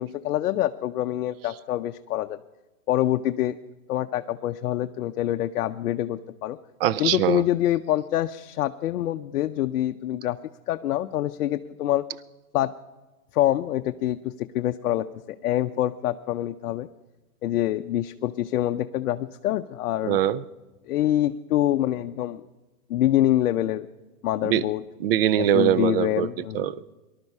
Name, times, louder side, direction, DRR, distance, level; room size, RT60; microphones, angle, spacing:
voice 1, 0.0-2.4 2.9-3.6 3.9-6.6 7.0-10.4 10.7-12.0 12.5-12.7 13.3-16.9 17.4-20.2 20.8-22.4 22.9-23.9 24.2-24.8 25.4-26.7, left 13 dB, 65° left, 7 dB, 0.7 m, -25 dB
voice 2, 6.8-7.4 20.0-20.4 24.4-24.6 25.0-26.3 26.5-26.9, right 11 dB, 40° right, 18 dB, 0.5 m, -22 dB
19.0 x 12.0 x 5.5 m, 1.1 s
hypercardioid pair, 150°, 46 cm